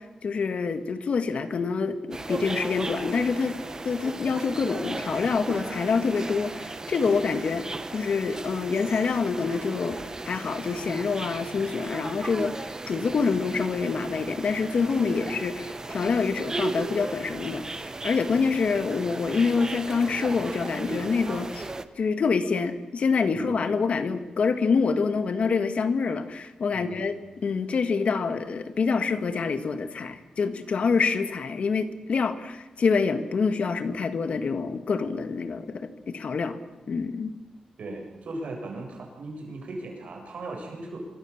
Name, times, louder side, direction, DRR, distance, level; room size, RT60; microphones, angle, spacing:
voice 1, 0.0-3.6 3.8-10.0 10.2-21.7 22.0-27.2 27.4-36.6 36.9-37.3, left 5 dB, 65° left, 9 dB, 2.0 m, -26 dB
sound 1, 2.1-21.8, right 3 dB, 30° right, 1.3 m, -36 dB
voice 2, 7.0-7.4 23.3-23.7 26.7-27.1 37.8-41.0, right 2 dB, 75° right, 1 dB, 7.9 m, -38 dB
26.0 x 24.0 x 7.4 m, 1.1 s
wide cardioid pair, 100°, 2 cm